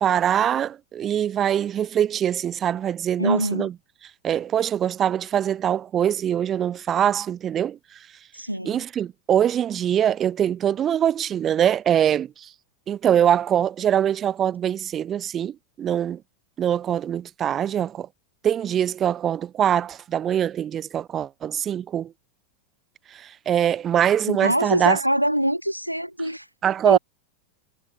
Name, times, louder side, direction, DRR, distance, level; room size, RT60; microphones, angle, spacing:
voice 1, 0.0-3.7 4.2-7.8 8.7-12.5 12.9-16.2 16.6-18.1 18.4-22.1 23.1-25.0 26.6-27.0, right 9 dB, 25° right, 0.4 m, -23 dB
voice 2, 3.2-3.7 8.3-8.8 24.3-26.5 26.8-27.0, equal, 90° right, 1.5 m, -24 dB
figure-of-eight pair, 90°, 0 cm